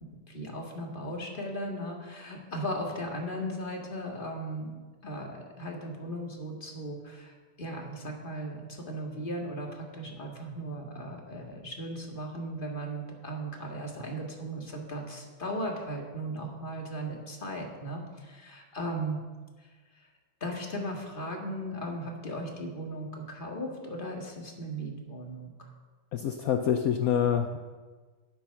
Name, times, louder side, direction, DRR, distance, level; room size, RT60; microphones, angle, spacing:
voice 1, 0.0-19.2 19.6-19.7 20.0-20.1 20.4-25.7, right 1 dB, 25° left, 0 dB, 1.8 m, -37 dB
voice 2, 26.1-27.6, left 8 dB, 80° left, 6 dB, 0.8 m, -26 dB
10.0 x 9.0 x 5.7 m, 1.4 s
omnidirectional pair, 2.1 m